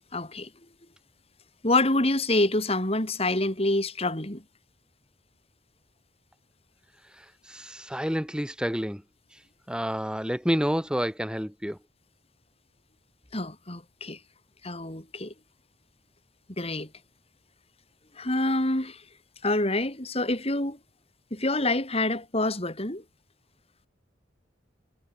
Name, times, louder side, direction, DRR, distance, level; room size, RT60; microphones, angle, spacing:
voice 1, 0.1-0.5 1.6-4.4 13.3-14.2 14.6-15.3 16.6-16.9 18.2-19.0 19.4-20.8 21.3-23.0, left 2 dB, 30° left, 4.3 m, -26 dB
voice 2, 7.2-9.0 9.7-11.8, equal, 5° right, 4.2 m, -29 dB
head